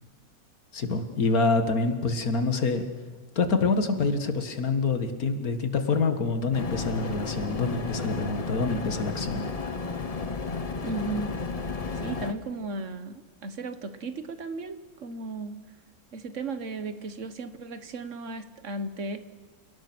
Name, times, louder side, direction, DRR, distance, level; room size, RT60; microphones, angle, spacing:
voice 1, 0.7-2.8 3.4-9.5, left 4 dB, 70° left, 8 dB, 2.2 m, -26 dB
sound 1, 6.5-12.3, left 4 dB, 30° left, 0.9 m, -33 dB
voice 2, 10.8-11.3 11.9-15.6 16.1-19.2, right 3 dB, 55° right, 11 dB, 1.6 m, -35 dB
29.0 x 18.0 x 6.2 m, 1.4 s
omnidirectional pair, 1.6 m